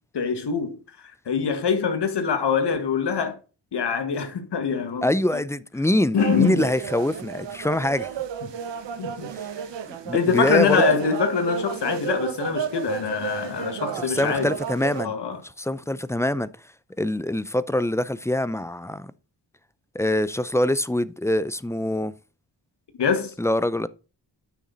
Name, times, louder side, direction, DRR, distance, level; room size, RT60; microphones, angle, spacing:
voice 1, 0.1-0.8 1.3-3.4 3.7-5.4 6.1-6.7 9.0-9.3 10.1-14.5 15.0-15.4 23.0-23.3, left 6 dB, 75° left, 1.8 m, -24 dB
voice 2, 5.0-8.1 9.3-9.5 9.9-10.8 14.1-15.1 15.6-16.5 17.0-19.1 19.9-22.1 23.4-23.9, left 1 dB, 5° left, 0.5 m, -24 dB
sound 1, 6.2-15.0, right 8 dB, 85° right, 1.2 m, -32 dB
9.3 x 6.2 x 4.0 m
cardioid pair, 80°, 42 cm